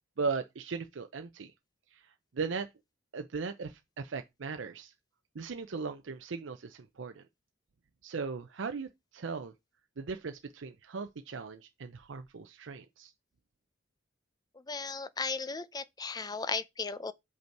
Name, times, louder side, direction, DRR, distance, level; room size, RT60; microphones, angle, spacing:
voice 1, 0.2-1.5 1.9-2.0 2.3-2.7 3.1-4.9 5.3-7.2 8.0-9.5 10.0-13.1, right 4 dB, 80° right, 0.6 m, -38 dB
voice 2, 14.5-17.1, left 4 dB, 20° left, 0.5 m, -36 dB
6.7 x 5.3 x 4.5 m
head